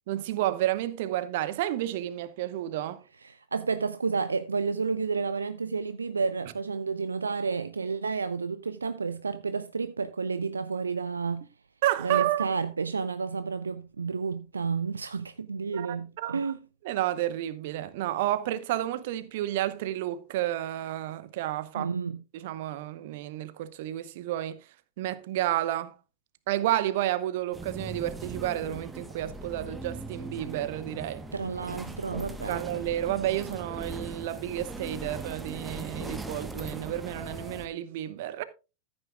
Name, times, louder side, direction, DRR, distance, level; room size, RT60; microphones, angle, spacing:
voice 1, 0.1-3.0 11.8-12.5 15.7-16.5 16.8-21.9 22.3-24.6 25.0-25.9 26.5-31.2 32.5-38.4, right 13 dB, 50° right, 0.9 m, -31 dB
voice 2, 3.2-11.5 12.0-16.6 21.7-22.2 31.3-32.6, right 5 dB, 75° right, 0.4 m, -31 dB
sound 1, 27.5-37.7, right 2 dB, 10° right, 1.1 m, -40 dB
14.0 x 8.9 x 2.3 m
figure-of-eight pair, 90°, 0 cm